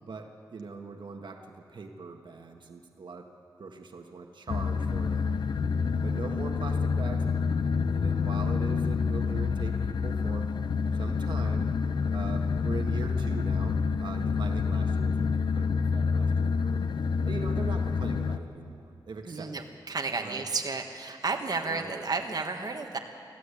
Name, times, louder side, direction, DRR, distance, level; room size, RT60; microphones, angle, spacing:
voice 1, 0.0-3.3 3.6-5.5 6.0-10.5 10.9-11.7 12.1-16.8 17.2-19.5 20.2-20.4 21.6-21.9, right 4 dB, 75° right, 3 dB, 1.5 m, -41 dB
sound 1, 4.5-18.4, left 5 dB, 65° left, 0.6 m, -28 dB
voice 2, 19.3-23.0, right 4 dB, 55° right, 3 dB, 1.5 m, -32 dB
25.0 x 15.0 x 8.4 m, 2.5 s
wide cardioid pair, 120°, 8 cm